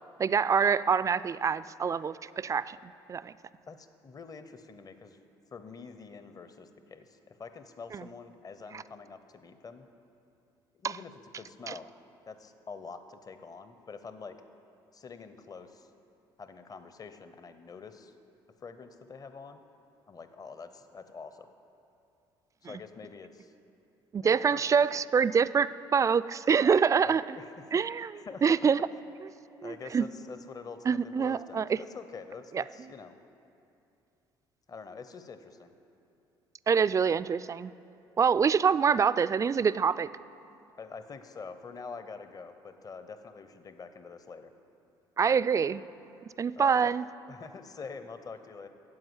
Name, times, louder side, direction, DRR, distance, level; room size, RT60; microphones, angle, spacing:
voice 1, 0.2-3.3 7.9-8.1 8.7-8.8 10.8-11.0 11.7-11.8 22.6-22.7 24.1-27.4 27.7-28.1 28.4-28.8 29.6-30.1 30.9-31.8 32.5-32.6 36.7-37.7 38.2-40.1 45.2-45.8 46.4-47.0, right 6 dB, 30° right, 17 dB, 0.3 m, -26 dB
voice 2, 3.7-5.2 5.5-9.9 10.7-11.1 11.4-11.9 12.3-14.4 14.9-15.9 16.4-18.1 18.6-19.6 20.1-21.5 22.6-23.5 24.2-24.8 27.0-27.8 28.2-28.6 29.6-33.2 34.7-35.7 40.8-44.5 46.6-46.9 47.3-48.7, left 5 dB, 35° left, 9 dB, 0.8 m, -46 dB
9.7 x 7.6 x 8.1 m, 2.7 s
hypercardioid pair, 60°, 11 cm